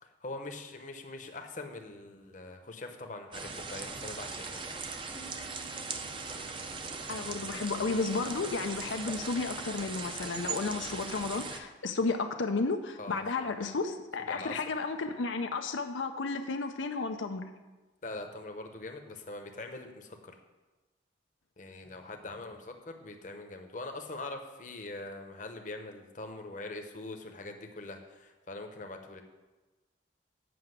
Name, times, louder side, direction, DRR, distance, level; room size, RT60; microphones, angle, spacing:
voice 1, 0.0-5.0 13.0-13.2 14.3-14.7 18.0-20.3 21.6-29.2, left 2 dB, 40° left, 5 dB, 0.9 m, -43 dB
sound 1, 3.3-11.6, right 4 dB, 25° right, 0.6 m, -39 dB
sound 2, 5.2-10.5, right 4 dB, 15° left, 0.7 m, -58 dB
voice 2, 7.1-17.4, left 3 dB, 90° left, 6 dB, 0.6 m, -33 dB
7.8 x 5.8 x 7.9 m, 1.2 s
head